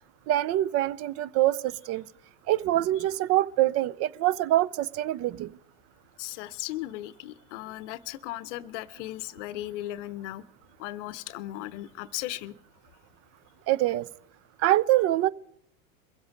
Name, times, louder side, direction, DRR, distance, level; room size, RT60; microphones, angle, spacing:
voice 1, 0.3-2.0 2.5-5.5 13.7-14.1 14.6-15.3, right 14 dB, 40° right, 0.5 m, -25 dB
voice 2, 6.2-10.4 10.8-12.5, left 15 dB, 65° left, 0.7 m, -37 dB
22.5 x 8.0 x 5.1 m
hypercardioid pair, 105°, 39 cm